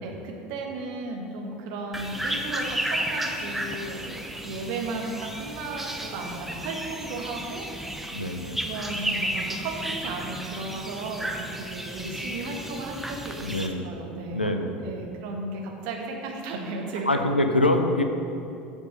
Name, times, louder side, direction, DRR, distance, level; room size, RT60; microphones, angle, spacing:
voice 1, 0.0-7.7 8.6-17.3, right 3 dB, 55° right, 1 dB, 1.3 m, -35 dB
sound 1, 1.9-13.7, right 1 dB, 5° right, 0.7 m, -33 dB
voice 2, 8.1-8.6 13.4-13.9 14.3-14.8 17.1-18.0, left 1 dB, 90° left, 6 dB, 0.5 m, -24 dB
7.7 x 5.4 x 6.2 m, 2.7 s
figure-of-eight pair, 75°, 5 cm